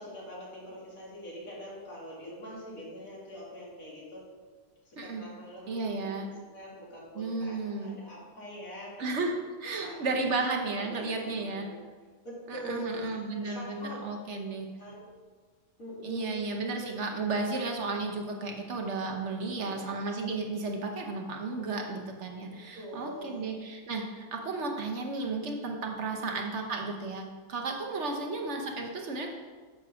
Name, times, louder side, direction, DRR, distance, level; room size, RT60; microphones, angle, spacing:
voice 1, 0.0-4.2 4.8-9.2 9.6-10.3 10.8-11.8 12.2-14.0 14.8-15.1 15.8-16.4 19.4-20.1 22.4-23.5 26.1-26.3 27.9-28.2, equal, 70° left, -6 dB, 2.8 m, -43 dB
voice 2, 5.7-6.3 7.1-8.0 9.0-9.3 9.6-11.7 12.5-14.7 16.0-29.3, right 3 dB, 55° right, 2 dB, 1.2 m, -33 dB
7.2 x 4.5 x 6.1 m, 1.5 s
omnidirectional pair, 1.5 m